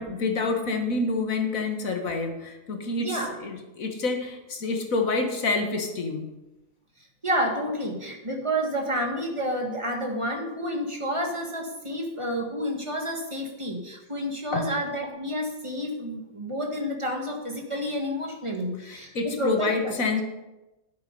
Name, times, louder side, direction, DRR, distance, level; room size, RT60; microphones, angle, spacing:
voice 1, 0.0-6.3 14.5-14.7 18.8-20.2, left 3 dB, 80° left, 4 dB, 1.9 m, -28 dB
voice 2, 3.0-3.3 7.2-19.9, equal, 20° right, 1 dB, 1.9 m, -30 dB
10.5 x 8.5 x 5.4 m, 1.0 s
omnidirectional pair, 1.4 m